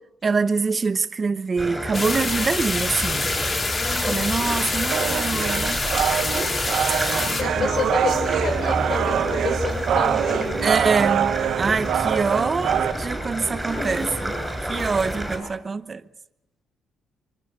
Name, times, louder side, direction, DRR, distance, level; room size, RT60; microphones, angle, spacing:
voice 1, 0.2-3.3 4.1-5.8 7.6-7.7 10.6-14.3 14.7-16.0, right 4 dB, 35° right, 0.9 m, -25 dB
sound 1, 1.6-15.4, equal, 10° right, 7.9 m, -29 dB
sound 2, 1.9-7.4, left 3 dB, 35° left, 3.0 m, -26 dB
voice 2, 3.8-4.4 7.4-10.6 13.4-14.1, left 4 dB, 55° left, 6.0 m, -30 dB
sound 3, 4.9-12.9, right 9 dB, 70° right, 1.3 m, -24 dB
24.5 x 23.5 x 6.6 m
cardioid pair, 90°, 0 cm